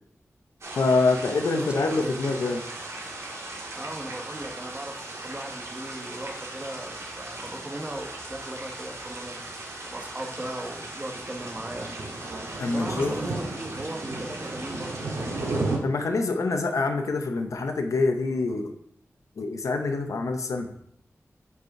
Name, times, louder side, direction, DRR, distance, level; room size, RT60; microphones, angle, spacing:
sound 1, 0.6-15.8, right 2 dB, 65° right, 1.5 m, -35 dB
voice 1, 0.7-2.6 12.6-13.2 15.8-18.8 19.4-20.7, left 3 dB, 85° left, 6 dB, 0.7 m, -25 dB
voice 2, 1.5-2.1 3.7-9.4 9.8-11.9 12.7-15.0, right 1 dB, 20° right, 3 dB, 1.0 m, -37 dB
5.2 x 4.8 x 4.7 m, 0.71 s
wide cardioid pair, 95°, 5 cm